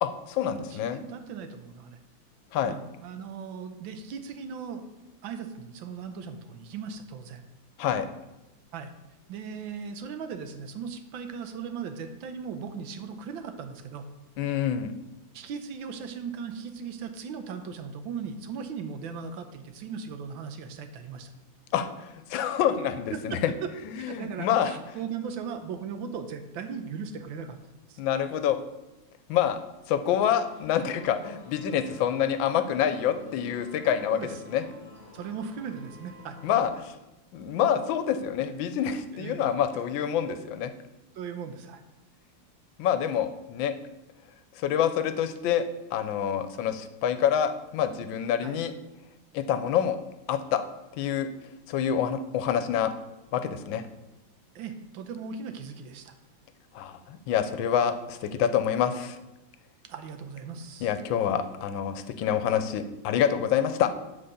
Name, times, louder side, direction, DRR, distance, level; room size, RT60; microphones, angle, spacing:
voice 1, 0.0-1.0 2.5-2.7 7.8-8.1 14.4-14.9 21.7-23.4 24.0-24.8 28.0-28.6 29.3-29.6 29.9-34.2 34.5-34.6 36.4-37.0 37.3-40.7 42.8-43.7 44.6-45.6 45.9-48.7 49.3-50.0 50.3-50.6 51.0-51.3 51.7-52.9 53.3-53.9 56.7-59.2 60.8-63.9, left 9 dB, 80° left, 10 dB, 1.4 m, -27 dB
voice 2, 0.5-2.0 2.6-4.9 5.2-7.4 8.7-8.9 9.3-14.0 15.3-21.3 23.1-23.7 24.0-27.6 27.9-28.0 34.1-34.4 35.1-36.4 39.1-39.5 41.1-41.8 48.4-48.6 54.5-56.2 59.8-60.9, right 6 dB, 85° right, 8 dB, 1.5 m, -38 dB
sound 1, 30.1-36.8, left 3 dB, 40° left, 2.0 m, -49 dB
7.7 x 4.2 x 6.5 m, 0.99 s
omnidirectional pair, 2.1 m